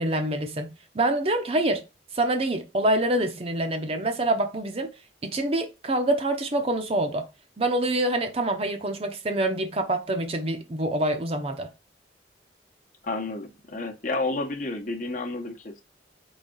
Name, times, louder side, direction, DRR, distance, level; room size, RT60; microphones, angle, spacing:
voice 1, 0.0-1.8 2.1-4.9 5.2-7.3 7.6-11.7, right 1 dB, 35° right, 0.6 m, -26 dB
voice 2, 13.0-15.8, left 2 dB, 45° left, 0.9 m, -31 dB
4.0 x 3.5 x 3.8 m
head